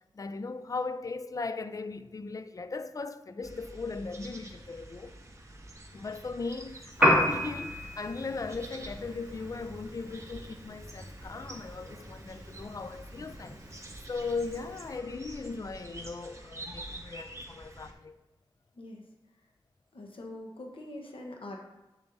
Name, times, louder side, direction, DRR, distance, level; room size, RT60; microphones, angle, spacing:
voice 1, 0.1-5.2 5.9-13.6 14.1-18.2, left 4 dB, 40° left, 0.4 m, -38 dB
sound 1, 3.4-17.9, right 1 dB, 30° right, 1.0 m, -47 dB
Piano, 6.9-15.0, equal, 10° right, 2.0 m, -33 dB
voice 2, 19.9-21.6, left 1 dB, 75° left, 1.1 m, -43 dB
7.2 x 6.8 x 2.7 m
wide cardioid pair, 85°, 9 cm